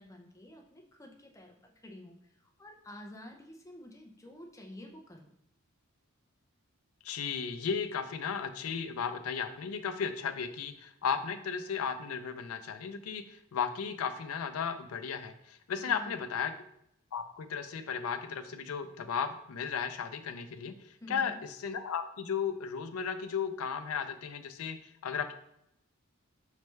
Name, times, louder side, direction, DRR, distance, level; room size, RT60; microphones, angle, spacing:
voice 1, 0.0-5.3 15.8-16.2 21.0-21.4, left 1 dB, 15° left, 2 dB, 0.5 m, -49 dB
voice 2, 7.0-16.5 17.1-20.7 21.1-21.3 21.6-24.8 25.0-25.3, left 6 dB, 90° left, 8 dB, 0.4 m, -35 dB
4.4 x 3.3 x 3.2 m, 0.76 s
head